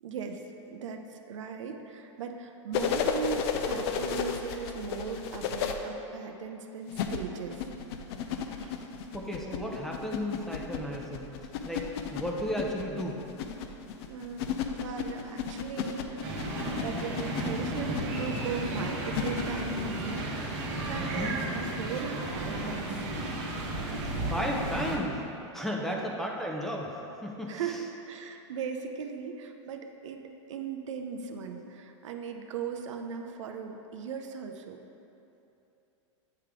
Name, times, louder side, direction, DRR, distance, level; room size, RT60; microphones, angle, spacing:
voice 1, 0.0-7.6 8.6-8.7 14.1-16.3 16.8-21.4 21.8-23.1 25.9-26.1 27.5-34.8, right 6 dB, 80° right, 5 dB, 0.5 m, -38 dB
sound 1, 2.7-5.7 6.9-20.3 22.0-22.1, left 7 dB, 55° left, 0.5 m, -34 dB
voice 2, 9.1-11.3 11.6-13.2 21.0-21.3 24.2-25.2 25.5-26.9 27.2-27.6, equal, ahead, -1 dB, 0.6 m, -34 dB
sound 2, 16.2-25.0, right 2 dB, 50° right, 1.0 m, -33 dB
8.7 x 3.3 x 3.6 m, 2.8 s
hypercardioid pair, 120°, 16 cm